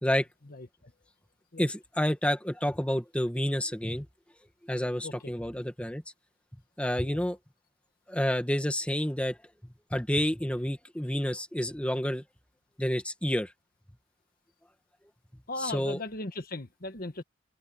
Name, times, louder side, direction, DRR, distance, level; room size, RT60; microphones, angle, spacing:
voice 1, 1.6-4.1 4.6-6.0 6.8-7.4 8.1-9.4 9.9-12.2 12.8-13.5 15.6-16.0, equal, 5° left, 2.0 m, -29 dB
voice 2, 15.5-17.2, left 2 dB, 50° left, 1.6 m, -37 dB
head